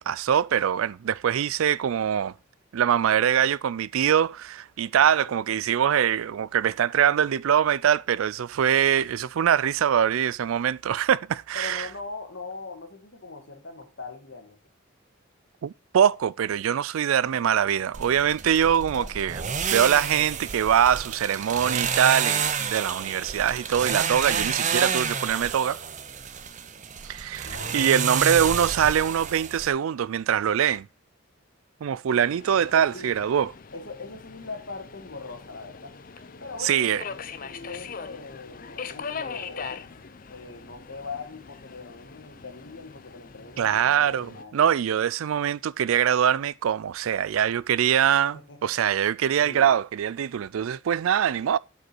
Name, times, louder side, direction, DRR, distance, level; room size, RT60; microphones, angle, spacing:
voice 1, 0.0-2.3 2.7-11.9 15.6-19.4 19.7-25.8 27.1-30.9 31.8-33.5 36.6-37.0 43.6-51.6, right 9 dB, 80° right, 0.4 m, -23 dB
voice 2, 5.0-5.3 11.5-14.6 18.9-19.2 20.7-20.9 27.4-28.0 32.7-33.1 33.7-36.0 36.4-39.9 40.3-43.8 44.1-44.7 48.3-48.7 49.4-49.7, left 3 dB, 60° left, 1.8 m, -41 dB
sound 1, 17.9-29.7, right 7 dB, 35° right, 0.6 m, -29 dB
Subway metro underground, 32.1-44.4, left 5 dB, 40° left, 0.5 m, -41 dB
8.1 x 5.4 x 4.4 m
head